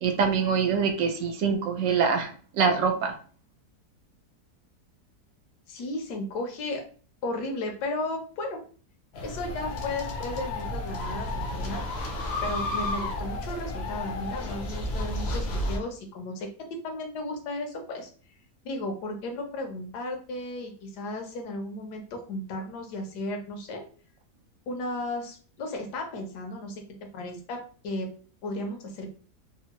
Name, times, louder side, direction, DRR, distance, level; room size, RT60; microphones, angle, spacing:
voice 1, 0.0-3.1, right 6 dB, 70° right, 5 dB, 0.8 m, -25 dB
voice 2, 5.7-6.8 7.2-8.6 9.1-11.8 12.4-18.1 18.6-23.8 24.7-28.1 28.4-29.1, left 2 dB, 80° left, 3 dB, 1.3 m, -34 dB
sound 1, 9.1-15.8, left 1 dB, 65° left, 0.6 m, -32 dB
3.4 x 2.0 x 2.9 m, 0.41 s
omnidirectional pair, 1.7 m